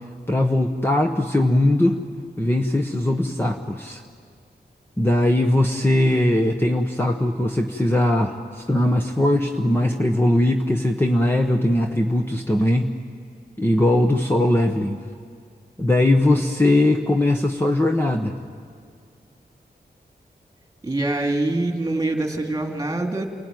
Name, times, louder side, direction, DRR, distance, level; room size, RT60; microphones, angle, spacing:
voice 1, 0.3-2.0 2.4-4.0 5.0-12.9 13.6-15.0 15.8-18.4, left 1 dB, 15° left, 3 dB, 1.1 m, -20 dB
voice 2, 20.8-23.3, right 2 dB, 20° right, 3 dB, 2.6 m, -24 dB
28.5 x 17.5 x 9.3 m, 2.1 s
wide cardioid pair, 100°, 17 cm